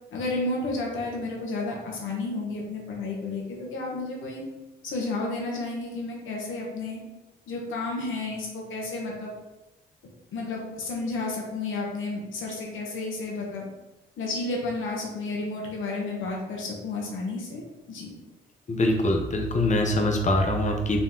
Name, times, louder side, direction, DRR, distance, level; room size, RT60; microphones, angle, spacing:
voice 1, 0.1-4.4 4.8-7.0 7.5-9.4 10.3-13.7 14.2-18.1, left 2 dB, 80° left, -1 dB, 1.3 m, -32 dB
voice 2, 18.7-21.0, left 1 dB, 35° left, 2 dB, 0.9 m, -23 dB
3.9 x 3.0 x 3.8 m, 1.0 s
cardioid pair, 90°, 20 cm